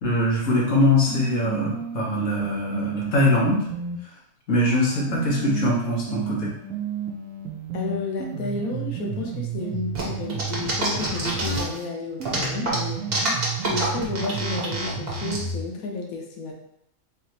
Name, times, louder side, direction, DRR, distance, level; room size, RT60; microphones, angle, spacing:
voice 1, 0.0-3.6 4.5-6.5, left 2 dB, 65° left, -5 dB, 1.6 m, -22 dB
sound 1, 0.7-4.0 4.7-11.7 12.2-15.7, right 6 dB, 65° right, 0.8 m, -32 dB
voice 2, 7.7-13.0 13.6-16.5, left 3 dB, 90° left, 0 dB, 1.3 m, -32 dB
sound 2, 9.9-11.8 12.2-15.4, right 2 dB, 45° right, 1.2 m, -27 dB
4.1 x 3.1 x 2.9 m, 0.73 s
omnidirectional pair, 1.4 m